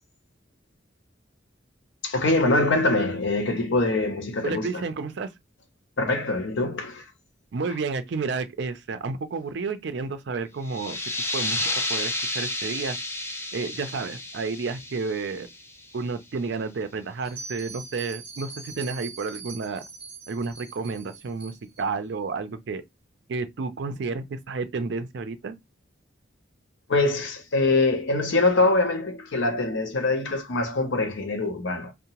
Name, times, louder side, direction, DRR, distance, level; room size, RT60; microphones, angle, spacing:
voice 1, 2.0-4.8 6.0-7.1 26.9-31.9, left 2 dB, 70° left, 0.6 m, -24 dB
voice 2, 4.4-5.3 7.5-11.0 11.3-13.0 13.5-15.5 15.9-19.8 20.3-22.8 23.3-25.5, right 4 dB, 60° right, 0.4 m, -31 dB
sound 1, 10.6-16.0, left 1 dB, 15° left, 0.3 m, -31 dB
Bell, 17.2-21.8, right 4 dB, 25° right, 1.1 m, -42 dB
2.7 x 2.0 x 2.9 m
head